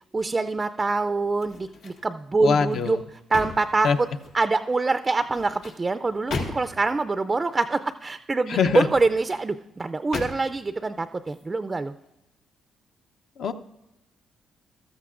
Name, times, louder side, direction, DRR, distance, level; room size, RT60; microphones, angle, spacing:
voice 1, 0.1-3.0 3.3-4.1 4.3-11.9, right 3 dB, 25° right, 11 dB, 0.4 m, -25 dB
sound 1, 1.3-2.1 2.5-4.5 5.2-6.9 8.7-9.5 10.1-10.7 11.2-11.4, left 3 dB, 85° left, 1.7 m, -37 dB
voice 2, 2.4-3.0 3.8-4.0 8.5-8.9 13.4-13.5, left 6 dB, 65° left, 8 dB, 0.6 m, -22 dB
14.0 x 13.0 x 2.5 m, 0.92 s
cardioid pair, 90°, 0 cm